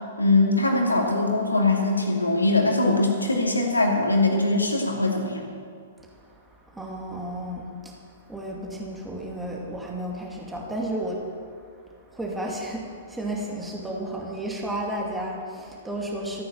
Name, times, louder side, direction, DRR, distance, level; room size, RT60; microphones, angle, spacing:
voice 1, 0.2-5.5, left 2 dB, 85° left, 0 dB, 2.5 m, -22 dB
voice 2, 6.0-6.4 6.7-8.0 8.3-11.3 12.1-16.4, right 1 dB, 5° right, -2 dB, 2.3 m, -32 dB
14.5 x 9.4 x 7.2 m, 2.2 s
figure-of-eight pair, 110°, 0 cm